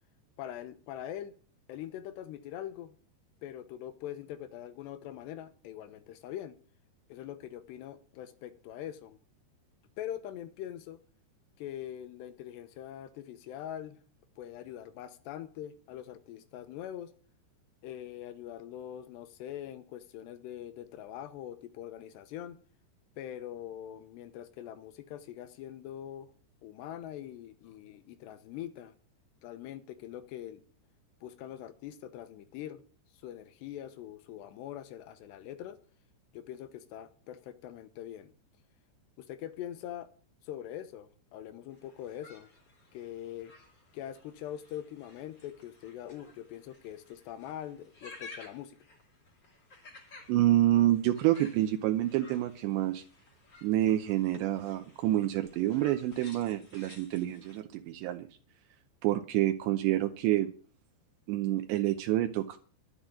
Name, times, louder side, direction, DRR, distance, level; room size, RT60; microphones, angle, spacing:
voice 1, 0.4-1.3 1.7-2.9 3.4-6.6 7.1-9.2 10.0-11.0 11.6-14.0 14.4-17.1 17.8-22.6 23.2-26.3 26.6-29.0 29.4-30.6 31.2-32.8 33.2-35.8 36.3-38.3 39.2-40.1 40.4-42.5 42.9-43.5 43.9-48.8, left 11 dB, 75° left, 12 dB, 3.0 m, -43 dB
sound 1, 41.7-57.6, left 3 dB, 30° left, 2.4 m, -55 dB
voice 2, 50.3-53.0 53.6-58.3 59.0-60.5 61.3-62.6, right 14 dB, 80° right, 6 dB, 3.0 m, -28 dB
11.5 x 8.1 x 8.6 m, 0.41 s
omnidirectional pair, 5.1 m